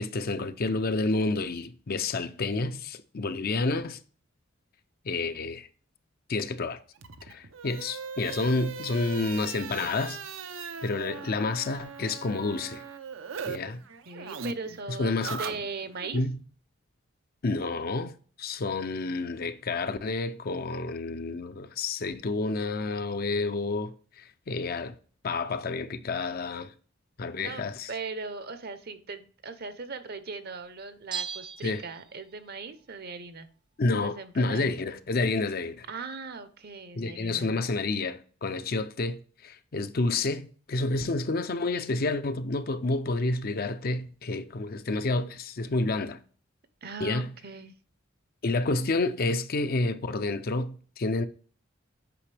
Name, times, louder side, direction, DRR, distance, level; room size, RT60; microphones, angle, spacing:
voice 1, 0.0-4.0 5.1-5.7 6.3-6.8 7.2-10.2 10.8-12.8 13.5-13.8 14.9-15.4 16.1-16.4 17.4-25.0 25.2-26.7 27.2-27.9 31.6-31.8 33.8-35.9 37.0-46.2 47.0-47.3 48.4-51.2, left 3 dB, 50° left, 0.6 m, -29 dB
sound 1, 7.0-13.6 13.8-16.1, right 5 dB, 80° right, 0.7 m, -39 dB
voice 2, 14.1-16.2 27.4-33.5 34.0-34.7 35.9-37.6 46.8-47.7, right 4 dB, 55° right, 0.8 m, -39 dB
Bell, 31.1-32.5 32.8-32.9, right 6 dB, 25° right, 0.5 m, -38 dB
8.6 x 5.3 x 3.4 m
head